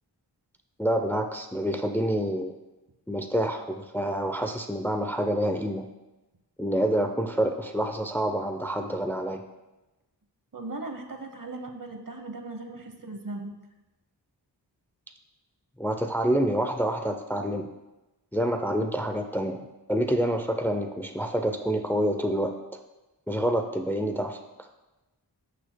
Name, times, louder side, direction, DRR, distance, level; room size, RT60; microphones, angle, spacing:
voice 1, 0.8-2.5 3.1-5.9 6.6-9.4 15.8-17.7 18.3-19.6 19.9-22.5 23.3-24.4, right 1 dB, 5° left, 5 dB, 0.6 m, -27 dB
voice 2, 10.5-13.5, right 2 dB, 50° right, 6 dB, 1.0 m, -38 dB
14.0 x 6.5 x 2.2 m, 1.1 s
wide cardioid pair, 45°, 42 cm